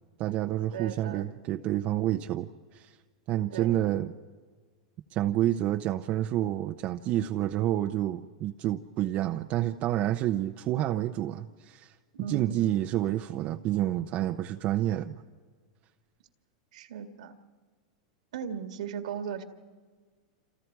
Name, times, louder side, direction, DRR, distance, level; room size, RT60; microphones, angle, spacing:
voice 1, 0.2-2.9 3.3-4.1 5.1-11.9 12.3-15.1, right 13 dB, 40° right, 6 dB, 0.7 m, -29 dB
voice 2, 0.7-1.3 3.5-4.0 12.1-12.7 16.7-17.4 18.3-19.4, right 7 dB, 80° right, 7 dB, 1.9 m, -37 dB
28.5 x 27.5 x 4.7 m, 1.5 s
supercardioid pair, 130°, 4 cm